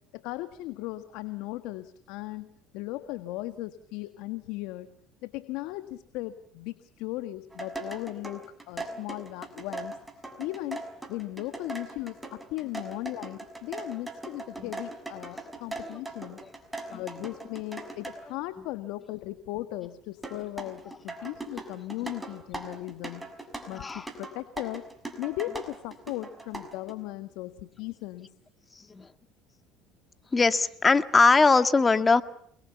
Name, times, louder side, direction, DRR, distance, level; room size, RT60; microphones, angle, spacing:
voice 1, 0.1-2.5 2.7-4.9 5.2-10.0 10.4-10.8 11.1-16.4 16.9-23.2 23.7-24.8 25.2-28.3, left 17 dB, 75° left, 11 dB, 1.6 m, -37 dB
sound 1, 7.5-18.2 20.2-26.9, right 2 dB, 10° right, 6.2 m, -39 dB
voice 2, 23.7-24.1 28.9-29.1 30.3-32.2, left 4 dB, 25° left, 10 dB, 2.0 m, -21 dB
29.5 x 22.0 x 7.0 m, 0.65 s
hypercardioid pair, 80°, 0 cm